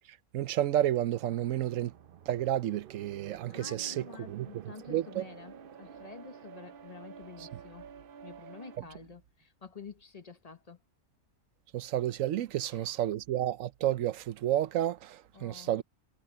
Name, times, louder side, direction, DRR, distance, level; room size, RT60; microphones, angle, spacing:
voice 1, 0.3-1.9 2.3-4.5 4.9-5.2 8.8-8.9 11.7-15.8, right 12 dB, 85° right, 1.1 m, -31 dB
sound 1, 1.1-8.8, right 8 dB, 55° right, 0.7 m, -50 dB
voice 2, 3.5-7.9 8.2-10.8 12.6-13.0 15.3-15.8, left 5 dB, 35° left, 1.0 m, -49 dB
omnidirectional pair, 1.3 m